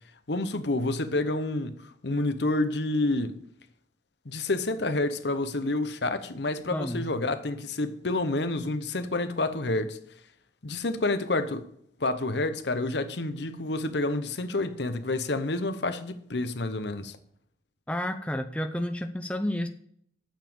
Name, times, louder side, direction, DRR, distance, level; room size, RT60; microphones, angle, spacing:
voice 1, 0.3-3.4 4.2-10.0 10.6-11.7 12.0-17.2, left 2 dB, 65° left, 0.9 m, -29 dB
voice 2, 6.7-7.1 17.9-19.7, left 1 dB, 5° left, 0.5 m, -30 dB
9.0 x 7.2 x 7.1 m
head